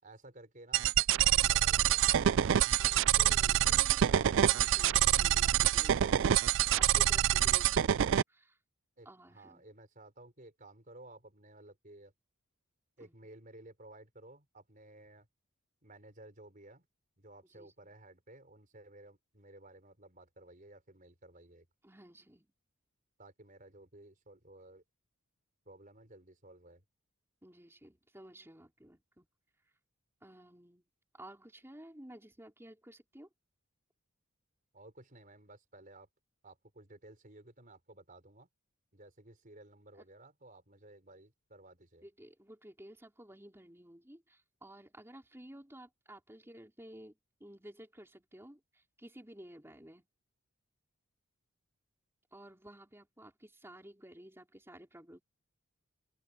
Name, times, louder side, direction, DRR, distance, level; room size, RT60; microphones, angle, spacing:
voice 1, 0.0-0.9 1.2-2.3 9.0-12.1 13.0-15.3 15.8-16.9 17.2-21.7 23.2-24.8 25.6-26.8 34.7-36.1 36.4-38.5 38.9-42.1, right 2 dB, 40° right, 4.9 m, -55 dB
sound 1, 0.7-8.2, right 11 dB, 60° right, 0.3 m, -26 dB
voice 2, 2.8-6.4 6.7-8.6 9.0-9.7 13.0-13.1 17.5-18.0 21.8-22.5 27.4-29.2 30.2-30.8 31.1-33.3 42.0-50.1 52.3-55.2, right 1 dB, 10° right, 4.1 m, -53 dB
open air
head